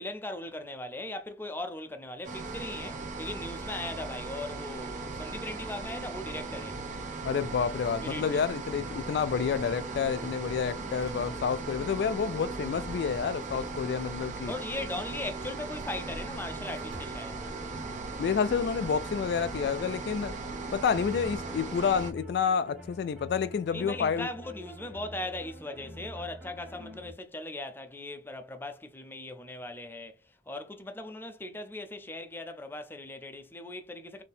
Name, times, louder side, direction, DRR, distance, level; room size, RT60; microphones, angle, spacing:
voice 1, 0.0-6.8 8.0-8.4 14.5-17.4 23.7-34.2, left 2 dB, 10° left, 0.5 m, -39 dB
sound 1, 2.2-22.1, right 3 dB, 45° right, 0.9 m, -38 dB
voice 2, 7.2-14.5 18.2-20.4 20.7-24.3, left 6 dB, 65° left, 0.3 m, -29 dB
sound 2, 7.3-8.4 9.4-10.1 10.8-11.6 12.4-12.8 13.6-15.1 15.4-16.2 16.7-17.4, right 1 dB, 90° right, 1.5 m, -54 dB
sound 3, 9.2-27.1, equal, 5° right, 1.3 m, -48 dB
4.0 x 2.8 x 3.6 m
head